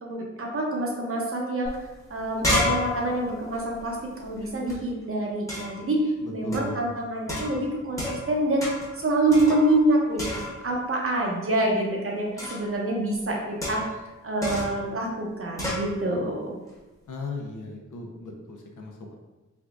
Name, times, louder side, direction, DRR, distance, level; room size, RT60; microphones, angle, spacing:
voice 1, 0.0-1.7 2.1-8.6 8.9-13.8 14.2-16.6, right 1 dB, 45° right, -1 dB, 0.7 m, -26 dB
sound 1, 1.7-1.8 2.0-4.8 5.5-5.9 6.5-6.8 7.3-8.3 8.6-9.0 9.3-9.9 10.2-10.8 12.4-12.7 13.6-14.0 14.4-14.8 15.6-15.9, left 1 dB, 10° left, 0.9 m, -30 dB
voice 2, 6.2-6.9 17.1-19.1, left 2 dB, 90° left, 1 dB, 0.7 m, -37 dB
3.5 x 3.5 x 2.4 m, 1.1 s
wide cardioid pair, 170°, 30 cm